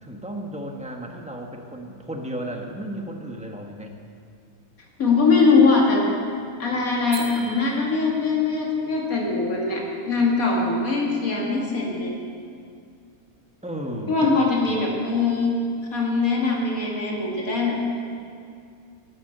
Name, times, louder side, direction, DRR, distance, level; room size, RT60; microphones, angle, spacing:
voice 1, 0.0-4.0 13.6-14.8, right 1 dB, 5° right, 1 dB, 1.2 m, -34 dB
voice 2, 5.0-6.1 6.6-12.1 14.1-15.5 15.9-17.8, left 4 dB, 75° left, -2 dB, 2.8 m, -21 dB
sound 1, 7.1-8.3, right 4 dB, 80° right, 1.7 m, -38 dB
13.0 x 11.5 x 6.7 m, 2.3 s
omnidirectional pair, 1.5 m